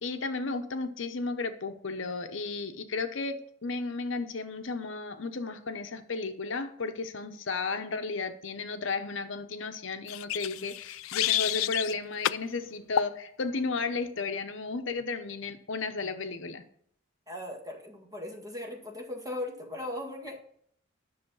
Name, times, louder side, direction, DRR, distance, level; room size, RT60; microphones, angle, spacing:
voice 1, 0.0-16.6, left 3 dB, 65° left, 8 dB, 0.8 m, -34 dB
sound 1, 10.1-11.9 12.2-12.4 13.0-13.2, left 12 dB, 85° left, 0.3 m, -29 dB
voice 2, 17.3-20.4, left 1 dB, 15° right, 1 dB, 1.7 m, -38 dB
10.5 x 6.5 x 5.5 m, 0.66 s
head